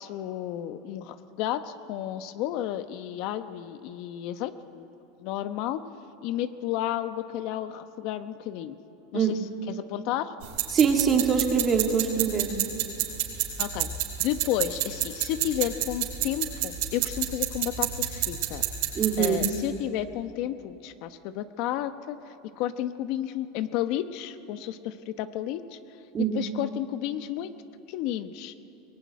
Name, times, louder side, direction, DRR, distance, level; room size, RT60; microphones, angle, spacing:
voice 1, 0.0-4.9 5.2-5.8 6.2-8.8 9.1-10.3 13.6-13.9 14.2-18.6 19.2-25.8 26.2-27.5 27.9-28.5, left 12 dB, 60° left, 10 dB, 1.0 m, -32 dB
sound 1, 10.4-19.5, right 12 dB, 70° right, 4.6 m, -30 dB
voice 2, 10.7-12.5 19.0-19.4 26.1-26.4, right 6 dB, 30° right, 3 dB, 2.5 m, -23 dB
22.0 x 19.0 x 9.4 m, 2.8 s
supercardioid pair, 115°, 0 cm